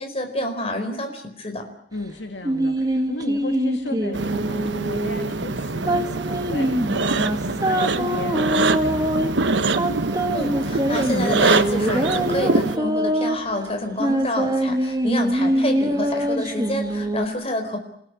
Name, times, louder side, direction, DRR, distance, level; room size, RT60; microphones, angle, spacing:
voice 1, 0.0-1.7 10.3-17.8, left 1 dB, 35° left, 5 dB, 4.6 m, -28 dB
voice 2, 1.9-9.4, left 2 dB, 75° left, 6 dB, 2.2 m, -35 dB
sound 1, 2.4-17.3, right 1 dB, 20° right, 1.8 m, -24 dB
sound 2, 4.1-12.8, right 3 dB, 85° right, 1.1 m, -24 dB
28.0 x 16.5 x 9.8 m, 0.73 s
head